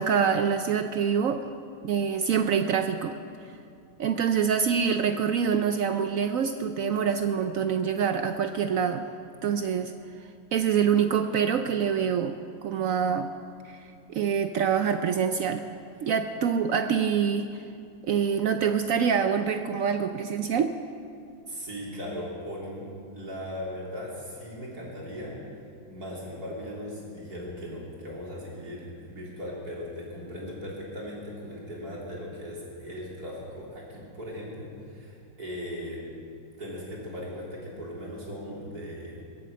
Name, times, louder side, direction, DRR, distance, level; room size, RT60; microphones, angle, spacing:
voice 1, 0.0-1.5 1.8-3.2 4.0-9.1 9.4-9.9 10.5-13.3 13.7-13.8 14.1-15.6 16.0-17.6 18.0-20.7, right 7 dB, 90° right, 8 dB, 0.7 m, -25 dB
voice 2, 21.5-25.4 25.9-36.0 36.6-39.2, equal, 50° right, -4 dB, 4.0 m, -38 dB
22.0 x 8.6 x 7.6 m, 2.4 s
omnidirectional pair, 2.2 m